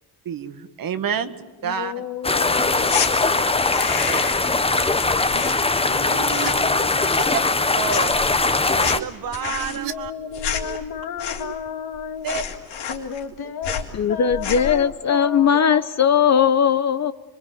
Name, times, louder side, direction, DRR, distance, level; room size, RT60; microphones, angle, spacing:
voice 1, 0.2-1.3 1.6-2.1 4.1-4.6 7.7-8.2 8.7-10.1 12.2-12.4, right 7 dB, 60° right, 1.8 m, -29 dB
voice 2, 1.6-3.8 5.0-5.6 5.8-7.5 9.5-12.3 12.9-15.9 16.3-16.6, left 8 dB, 70° left, 2.3 m, -33 dB
sound 1, 2.2-9.0, left 3 dB, 15° left, 1.0 m, -21 dB
sound 2, 2.9-3.1 3.5-4.5 4.8-6.0 6.2-6.7 7.0-7.6 7.9-11.7 11.9-12.0 12.2-13.3 13.6-13.9 14.3-14.8, left 7 dB, 85° left, 3.8 m, -30 dB
sound 3, 5.8-6.5 6.8-7.4 8.4-9.9 10.2-10.8 11.1-11.5, right 11 dB, 85° right, 1.4 m, -37 dB
voice 3, 13.9-17.1, left 7 dB, 45° left, 0.9 m, -18 dB
26.5 x 23.0 x 9.2 m
cardioid pair, 90°, 39 cm